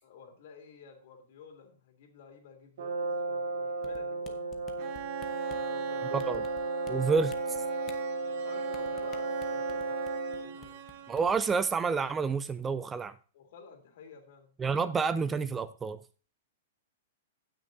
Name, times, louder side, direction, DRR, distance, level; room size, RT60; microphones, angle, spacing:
voice 1, 0.0-4.6 5.4-6.2 7.0-7.1 8.4-10.1 10.4-10.8 13.3-14.5, left 6 dB, 55° left, 4 dB, 3.0 m, -53 dB
Brass instrument, 2.8-10.6, right 3 dB, 70° right, 1.2 m, -34 dB
sound 1, 3.8-5.7 6.2-6.9 7.2-8.0 8.7-10.4 10.6-10.9 11.2-11.5, left 8 dB, 25° left, 1.0 m, -49 dB
Bowed string instrument, 4.8-11.5, right 9 dB, 40° right, 1.0 m, -41 dB
voice 2, 6.1-6.4 6.9-7.6 11.1-13.1 14.6-16.0, right 5 dB, 10° right, 14 dB, 0.3 m, -29 dB
16.5 x 6.3 x 2.7 m, 0.38 s
hypercardioid pair, 155°, 0 cm